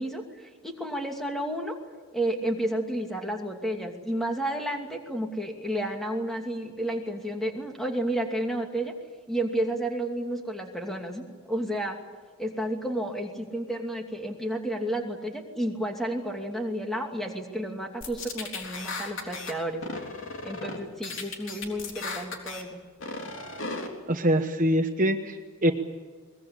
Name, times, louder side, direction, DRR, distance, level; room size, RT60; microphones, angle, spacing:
voice 1, 0.0-1.7 2.1-8.9 9.3-12.0 12.4-19.8 20.4-22.8, right 1 dB, ahead, 2 dB, 2.7 m, -31 dB
sound 1, 18.0-19.5 19.8-20.8 21.0-22.6 23.0-23.9, left 3 dB, 60° left, 3.6 m, -36 dB
voice 2, 24.1-25.7, equal, 35° right, 6 dB, 1.1 m, -24 dB
22.5 x 21.5 x 8.6 m, 1.5 s
head